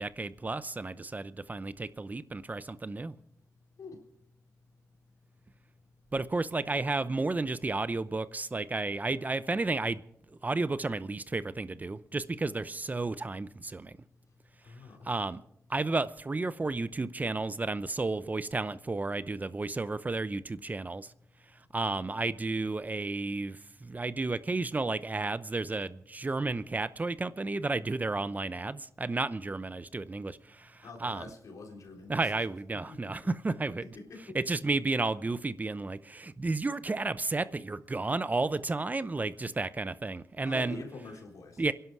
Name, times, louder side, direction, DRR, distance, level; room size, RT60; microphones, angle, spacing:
voice 1, 0.0-3.2 6.1-10.0 10.3-14.0 15.0-15.4 15.7-21.1 21.7-31.2 32.1-33.8 34.3-40.8 41.6-41.7, right 3 dB, 30° right, 0.7 m, -32 dB
voice 2, 14.6-15.4 30.8-32.3 32.9-33.1 33.8-34.4 40.5-41.6, left 3 dB, 75° left, 3.9 m, -46 dB
25.5 x 11.5 x 4.8 m
cardioid pair, 80°, 6 cm